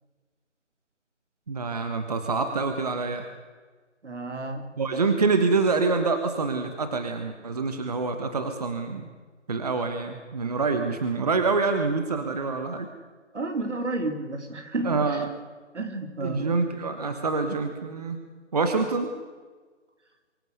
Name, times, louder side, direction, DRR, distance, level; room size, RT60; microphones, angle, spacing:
voice 1, 1.5-3.3 4.8-9.1 9.5-12.9 14.8-15.3 16.2-18.2 18.5-19.2, right 4 dB, 35° right, 7 dB, 1.5 m, -26 dB
voice 2, 4.0-4.6 13.3-15.2 15.7-16.4, right 2 dB, 70° right, 6 dB, 3.9 m, -31 dB
24.5 x 15.0 x 8.2 m, 1.4 s
figure-of-eight pair, 170°, 36 cm